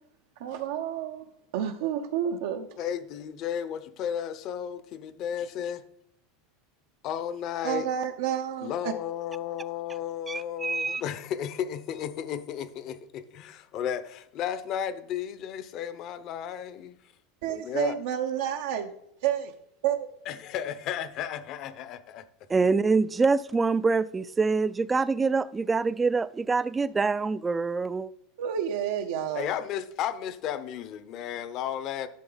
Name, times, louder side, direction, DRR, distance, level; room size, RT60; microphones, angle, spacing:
voice 1, 0.4-1.2 1.5-2.7 7.6-8.9 17.4-18.9 19.2-19.5 19.8-20.1 28.4-29.5, right 10 dB, 75° right, 0.8 m, -29 dB
voice 2, 2.8-5.8 7.0-7.9 8.6-17.0 17.4-18.0 20.3-22.2 29.3-32.1, left 9 dB, 45° left, 0.8 m, -33 dB
voice 3, 10.3-11.0 22.5-28.1, right 4 dB, 15° right, 0.4 m, -25 dB
11.5 x 6.7 x 4.0 m
supercardioid pair, 130°, 0 cm